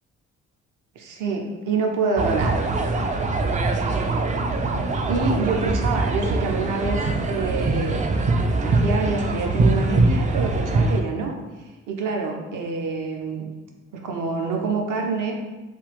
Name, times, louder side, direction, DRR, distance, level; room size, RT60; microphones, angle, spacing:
voice 1, 1.0-2.5 5.1-8.1 8.6-11.3 11.9-13.5 13.9-15.4, right 4 dB, 55° right, 1 dB, 0.8 m, -26 dB
sound 1, 2.2-11.0, right 3 dB, 20° right, 0.3 m, -22 dB
3.6 x 2.3 x 3.3 m, 1.2 s
hypercardioid pair, 45°, 37 cm